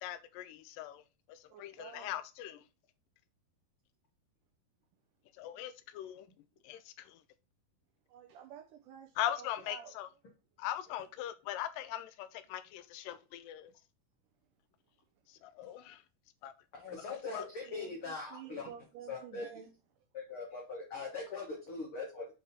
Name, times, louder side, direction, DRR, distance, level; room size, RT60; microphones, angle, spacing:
voice 1, 0.0-1.0 1.3-2.6 5.4-6.3 6.6-7.2 9.2-10.1 10.6-13.7 15.3-16.0 16.4-16.5 17.3-17.4, left 12 dB, 85° left, 1.9 m, -40 dB
voice 2, 1.5-2.1 8.1-10.0 17.7-19.7, right 8 dB, 90° right, 1.8 m, -50 dB
voice 3, 16.7-18.7 19.1-19.5 20.1-22.3, left 4 dB, 60° left, 1.4 m, -41 dB
7.4 x 3.6 x 4.1 m
omnidirectional pair, 4.5 m